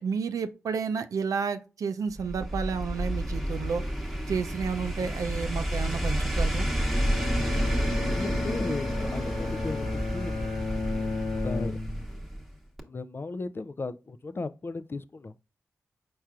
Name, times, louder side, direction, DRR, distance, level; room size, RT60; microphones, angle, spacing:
voice 1, 0.0-3.8 4.3-6.7, right 6 dB, 75° right, 0.5 m, -31 dB
sound 1, 2.2-12.5 12.8-12.9, equal, ahead, 1.1 m, -30 dB
Bowed string instrument, 6.8-12.2, left 3 dB, 70° left, 0.9 m, -34 dB
voice 2, 8.1-11.7 12.9-15.3, left 3 dB, 40° left, 0.4 m, -36 dB
4.7 x 4.3 x 2.4 m
cardioid pair, 45°, 6 cm